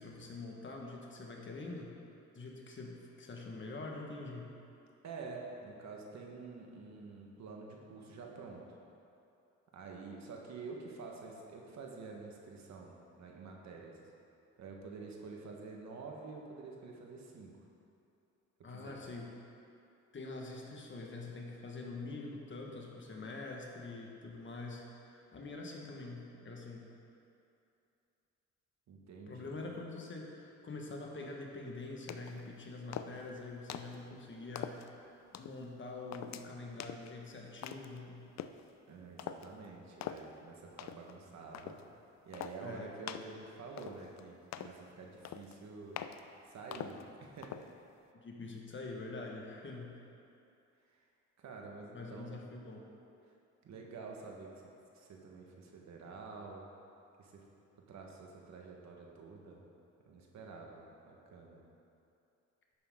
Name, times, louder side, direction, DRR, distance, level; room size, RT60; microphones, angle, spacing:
voice 1, 0.0-2.0 2.3-4.5 18.6-19.3 20.1-26.9 29.3-38.3 42.6-42.9 48.1-50.0 51.9-52.8, left 3 dB, 40° left, -1 dB, 1.6 m, -45 dB
voice 2, 5.0-8.8 9.7-14.0 14.6-17.5 18.7-19.0 28.9-29.7 38.9-41.8 42.2-46.0 46.5-47.6 50.9-51.1 51.4-52.5 53.2-53.3 53.6-54.6 54.9-56.7 57.2-57.4 57.9-59.6 60.0-61.6, right 4 dB, 65° right, 0 dB, 1.6 m, -48 dB
sound 1, 32.1-32.4 32.9-33.3 33.7-34.0 34.5-34.9 35.3-35.6 36.1-36.4 36.8-37.1 37.6-38.0 38.4-38.6 39.2-39.5 40.0-40.3 40.8-41.1 41.5-41.8 42.3-42.6 43.1-43.3 43.8-44.2 44.5-44.8 45.2-45.6 46.0-46.2 46.7-47.0 47.4-47.7, left 10 dB, 65° left, 0.5 m, -43 dB
11.0 x 8.7 x 3.8 m, 2.7 s
cardioid pair, 90°, 30 cm